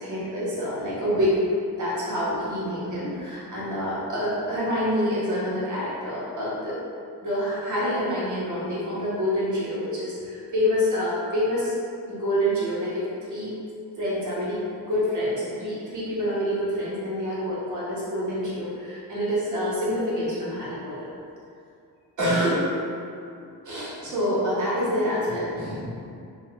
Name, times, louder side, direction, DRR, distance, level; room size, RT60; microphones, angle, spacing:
voice 1, 0.0-1.4 1.8-6.8 7.2-11.8 12.1-13.0 13.3-13.6 14.0-21.1 22.2-22.7 23.3-26.2, equal, 50° right, -8 dB, 1.1 m, -27 dB
2.7 x 2.4 x 3.1 m, 2.5 s
cardioid pair, 110°, 39 cm